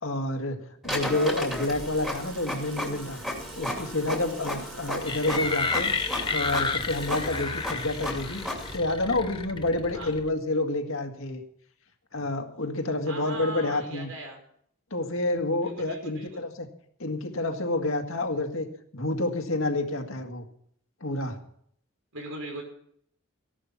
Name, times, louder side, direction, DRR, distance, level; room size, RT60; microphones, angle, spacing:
voice 1, 0.0-3.2 3.6-5.9 6.3-8.4 8.7-11.4 12.1-14.1 14.9-16.7 17.0-18.7 18.9-20.4 21.0-21.4, left 2 dB, 70° left, 4 dB, 1.9 m, -29 dB
Printer, 0.8-8.8, left 1 dB, ahead, 2.5 m, -35 dB
Water tap faucet / Sink (filling or washing) / Liquid, 1.0-7.4, right 5 dB, 60° right, 4.0 m, -49 dB
sound 1, 5.0-10.3, left 4 dB, 20° left, 0.9 m, -31 dB
voice 2, 13.1-14.4 15.6-16.4 22.1-22.6, right 1 dB, 85° right, 2 dB, 5.4 m, -39 dB
15.5 x 11.5 x 5.8 m, 0.67 s
head